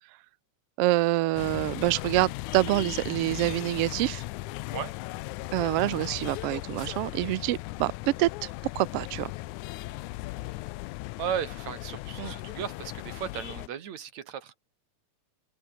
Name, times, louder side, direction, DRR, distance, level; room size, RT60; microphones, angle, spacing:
voice 1, 0.8-4.2 5.5-7.9 8.2-8.5 8.7-9.3 12.2-12.3, right 18 dB, 90° right, 1.3 m, -26 dB
sound 1, 1.4-13.7, left 20 dB, 80° left, 2.0 m, -37 dB
voice 2, 11.2-14.5, right 9 dB, 65° right, 3.3 m, -35 dB
omnidirectional pair, 3.5 m